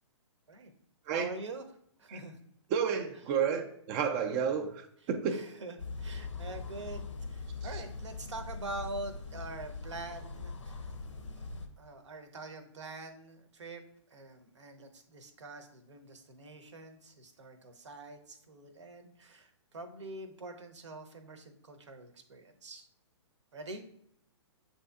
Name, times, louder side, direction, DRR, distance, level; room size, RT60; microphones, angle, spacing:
voice 1, 1.1-1.6 2.0-2.4 5.3-10.8 11.4-11.5 11.8-13.8 14.1-22.9 23.5-23.8, right 2 dB, 75° right, 7 dB, 0.8 m, -45 dB
voice 2, 2.7-5.4, right 7 dB, 30° right, 5 dB, 0.4 m, -31 dB
sound 1, 5.8-11.7, left 4 dB, 85° left, 0.7 m, -41 dB
7.4 x 2.8 x 2.3 m, 0.68 s
figure-of-eight pair, 120°, 15 cm